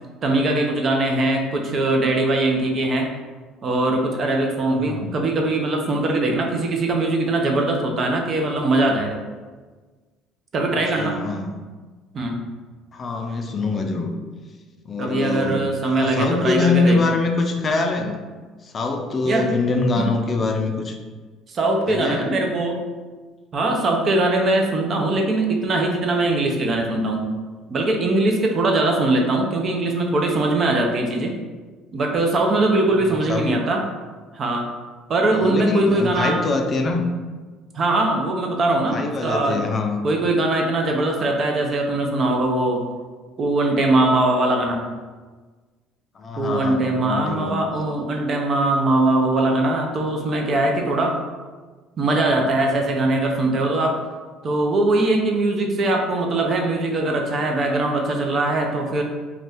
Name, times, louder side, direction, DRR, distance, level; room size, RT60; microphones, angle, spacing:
voice 1, 0.2-3.1 3.6-9.2 10.5-11.2 12.1-12.4 15.0-17.2 19.2-19.5 19.9-20.1 21.5-22.8 23.5-27.3 27.7-31.3 31.9-33.8 34.3-34.7 35.1-36.4 37.7-39.6 40.0-42.8 43.4-44.8 46.4-51.2 52.0-54.0 54.4-59.0, right 2 dB, 45° right, 2 dB, 0.5 m, -21 dB
voice 2, 4.7-5.1 10.9-11.5 12.9-14.1 14.9-15.6 16.0-18.2 18.6-21.0 21.9-22.3 33.0-33.6 35.4-37.0 38.9-40.0 46.2-47.5, left 3 dB, 35° left, 4 dB, 0.4 m, -24 dB
2.5 x 2.2 x 3.4 m, 1.4 s
supercardioid pair, 95°, 0 cm